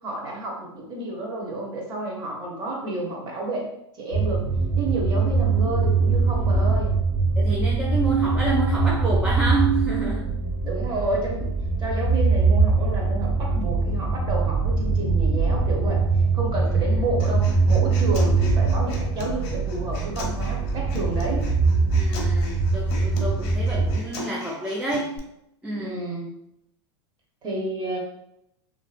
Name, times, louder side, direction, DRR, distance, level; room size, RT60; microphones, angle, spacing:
voice 1, 0.0-4.5 4.8-6.9 10.6-11.5 11.8-16.0 16.3-21.5 25.8-26.3 27.4-28.0, right 2 dB, 30° right, -1 dB, 0.9 m, -30 dB
sound 1, 4.1-24.0, right 4 dB, 65° right, 0.9 m, -22 dB
voice 2, 7.4-10.4 16.8-16.9 21.9-25.2 25.6-26.0, right 3 dB, 10° right, -4 dB, 0.3 m, -28 dB
Human voice, 17.2-25.2, left 2 dB, 40° left, 0.7 m, -39 dB
2.7 x 2.5 x 2.4 m, 0.81 s
hypercardioid pair, 115°, 14 cm